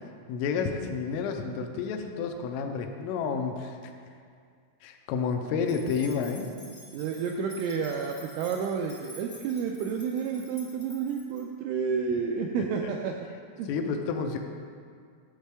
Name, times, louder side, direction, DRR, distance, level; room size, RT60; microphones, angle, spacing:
voice 1, 0.3-3.8 4.8-6.5 13.7-14.4, left 5 dB, 85° left, 4 dB, 3.1 m, -30 dB
sound 1, 5.6-11.4, left 1 dB, 45° left, 0.9 m, -50 dB
voice 2, 6.9-13.1 13.6-13.7, right 6 dB, 85° right, 1 dB, 2.7 m, -30 dB
13.0 x 7.3 x 3.4 m, 2.2 s
omnidirectional pair, 6.0 m